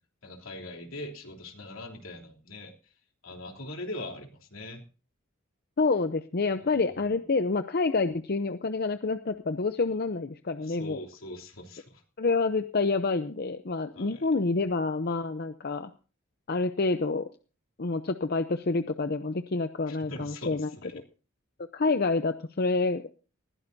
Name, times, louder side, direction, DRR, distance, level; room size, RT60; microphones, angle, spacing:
voice 1, 0.2-2.7 3.2-4.8 7.1-7.2 10.6-12.0 13.9-14.3 19.9-21.0, left 1 dB, 80° left, 2 dB, 3.2 m, -41 dB
voice 2, 5.8-11.0 12.2-15.9 16.5-17.2 17.8-20.7 21.7-23.1, left 3 dB, 50° left, 10 dB, 0.6 m, -28 dB
20.0 x 15.5 x 2.7 m, 0.36 s
head